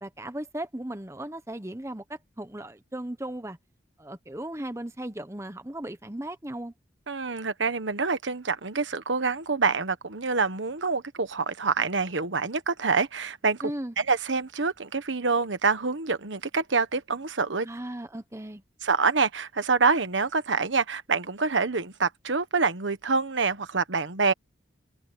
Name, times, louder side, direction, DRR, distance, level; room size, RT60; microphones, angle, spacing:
voice 1, 0.0-3.6 4.0-6.7 13.6-13.9 17.6-18.6, right 1 dB, 15° right, 1.2 m, -36 dB
voice 2, 7.1-13.6 14.0-17.7 18.8-24.3, right 4 dB, 85° right, 1.3 m, -26 dB
head